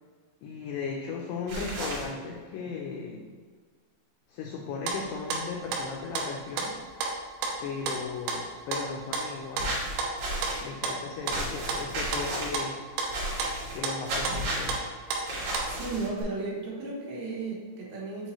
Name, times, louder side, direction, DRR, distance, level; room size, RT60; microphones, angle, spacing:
voice 1, 0.4-3.3 4.3-6.7 7.6-9.8 10.6-12.8 13.7-14.8, left 5 dB, 90° left, 0 dB, 2.3 m, -36 dB
sound 1, 1.5-2.1 9.6-10.6 11.3-12.6 13.1-13.8 14.1-14.8 15.3-16.2, right 1 dB, 60° right, 2.1 m, -33 dB
sound 2, 4.9-5.4 5.7-6.3 6.6-7.1 7.4-8.0 8.3-9.7 10.0-12.3 12.5-14.8 15.1-15.7, right 4 dB, 90° right, 3.1 m, -31 dB
voice 2, 15.4-18.3, right 3 dB, 75° right, -4 dB, 3.3 m, -35 dB
7.7 x 4.4 x 3.0 m, 1.5 s
omnidirectional pair, 5.3 m